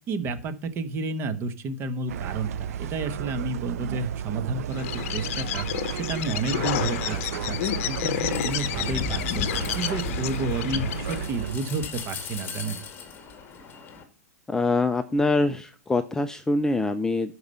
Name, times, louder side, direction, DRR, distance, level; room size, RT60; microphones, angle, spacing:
voice 1, 0.1-12.8, right 3 dB, 25° right, 11 dB, 1.2 m, -31 dB
sound 1, 2.1-11.6, right 9 dB, 65° right, 0.5 m, -33 dB
Bird, 4.7-11.3, left 12 dB, 55° left, 0.8 m, -31 dB
sound 2, 6.6-14.0, left 6 dB, 25° left, 1.9 m, -37 dB
voice 2, 14.5-17.3, left 2 dB, 5° left, 9 dB, 0.4 m, -24 dB
12.0 x 4.9 x 5.5 m, 0.39 s
hypercardioid pair, 135°, 9 cm